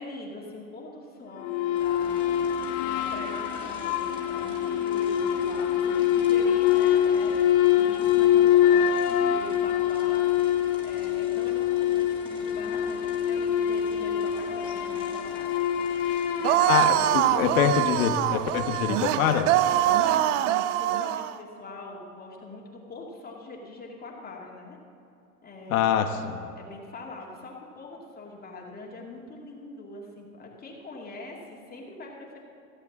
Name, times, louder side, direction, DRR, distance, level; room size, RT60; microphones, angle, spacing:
voice 1, 0.0-2.4 2.9-10.5 10.8-15.5 16.4-17.5 19.7-24.8 25.4-25.9 26.5-32.4, left 2 dB, 20° left, -2 dB, 2.3 m, -43 dB
sound 1, 1.4-18.0, left 10 dB, 45° left, 1.1 m, -25 dB
sound 2, 1.7-20.2, equal, 10° right, 2.4 m, -46 dB
sound 3, 16.4-21.3, right 13 dB, 55° right, 0.6 m, -24 dB
voice 2, 16.7-19.5 25.7-26.4, left 9 dB, 65° left, 6 dB, 1.3 m, -25 dB
16.0 x 8.3 x 7.2 m, 2.7 s
hypercardioid pair, 115°, 45 cm